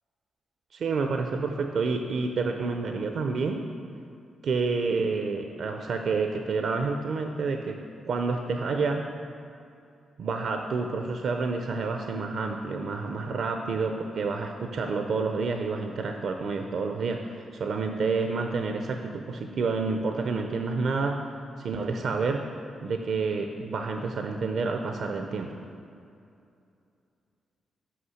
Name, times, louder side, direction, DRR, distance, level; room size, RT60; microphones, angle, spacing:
voice 1, 0.7-3.7 4.4-9.1 10.2-21.2 21.6-22.4 22.8-25.6, right 4 dB, 65° right, 4 dB, 0.5 m, -29 dB
5.7 x 5.3 x 6.3 m, 2.5 s
supercardioid pair, 45°, 0 cm